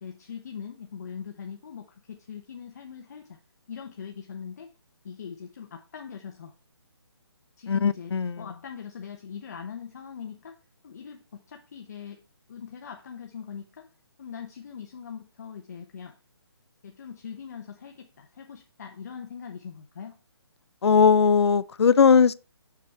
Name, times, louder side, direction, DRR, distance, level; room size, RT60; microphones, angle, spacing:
voice 1, 0.0-3.4 3.7-4.7 5.0-6.5 7.6-10.6 10.8-12.2 12.5-13.9 14.2-16.2 16.8-20.1, left 7 dB, 40° left, 0.8 m, -41 dB
voice 2, 7.7-8.4 20.8-22.3, left 6 dB, 75° left, 0.6 m, -19 dB
6.8 x 6.1 x 4.3 m
hypercardioid pair, 170°, 14 cm